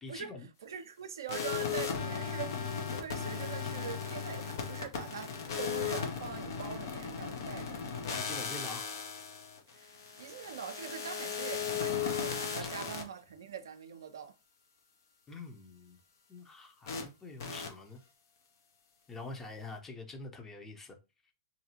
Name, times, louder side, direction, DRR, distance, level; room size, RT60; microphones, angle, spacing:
voice 1, 0.0-0.5 8.1-8.9 12.5-12.9 15.3-16.0 16.3-18.0 19.1-21.0, left 3 dB, 15° left, 0.7 m, -46 dB
voice 2, 0.6-7.8 9.7-14.3, right 8 dB, 75° right, 0.4 m, -43 dB
sound 1, 1.3-13.0 16.9-17.0 17.4-17.7, left 6 dB, 65° left, 0.7 m, -36 dB
2.7 x 2.3 x 2.8 m
hypercardioid pair, 105°, 2 cm